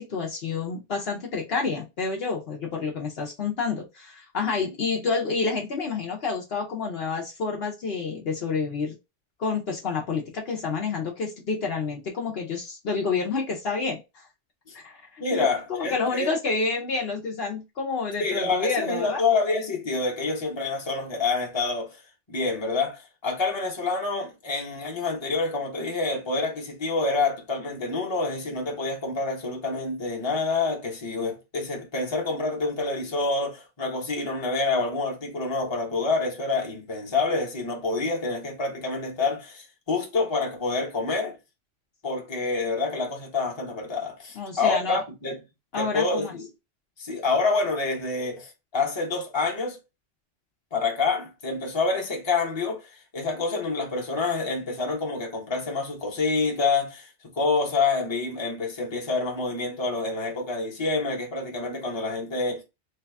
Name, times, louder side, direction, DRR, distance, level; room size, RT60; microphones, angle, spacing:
voice 1, 0.0-8.9 9.4-14.3 14.8-19.2 44.4-45.0 45.7-46.4, left 4 dB, 60° left, 0.9 m, -29 dB
voice 2, 15.2-16.3 18.2-22.0 22.3-41.4 42.0-45.4 45.8-46.5 47.0-49.8 50.7-57.1 57.4-62.6, left 3 dB, 25° left, 0.9 m, -27 dB
3.2 x 2.3 x 3.3 m
omnidirectional pair, 1.2 m